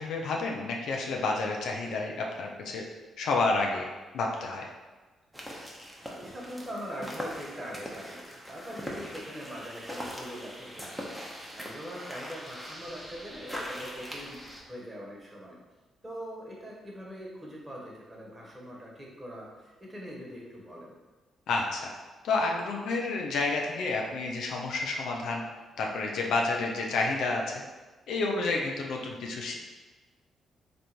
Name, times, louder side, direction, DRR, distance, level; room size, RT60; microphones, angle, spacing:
voice 1, 0.0-2.8 3.2-3.8 4.1-4.7 21.5-21.9 22.2-25.4 25.8-27.6 28.1-29.6, left 3 dB, 65° left, 0 dB, 0.5 m, -30 dB
sound 1, 5.3-14.6, equal, ahead, 1.0 m, -41 dB
voice 2, 6.0-11.0 11.5-15.6 16.0-20.9, equal, 25° right, -3 dB, 1.2 m, -42 dB
3.5 x 2.5 x 4.4 m, 1.2 s
hypercardioid pair, 40°, 0 cm